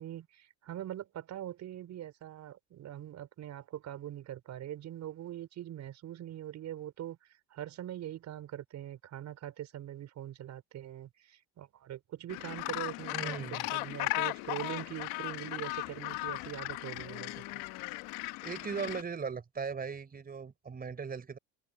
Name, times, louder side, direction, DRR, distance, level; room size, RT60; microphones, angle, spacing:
voice 1, 0.0-17.4, right 12 dB, 50° right, 4.8 m, -43 dB
Gull seagull, 12.3-19.0, left 23 dB, 75° left, 1.0 m, -37 dB
voice 2, 13.1-13.6 18.4-21.4, right 5 dB, 25° right, 5.0 m, -38 dB
supercardioid pair, 100°, 36 cm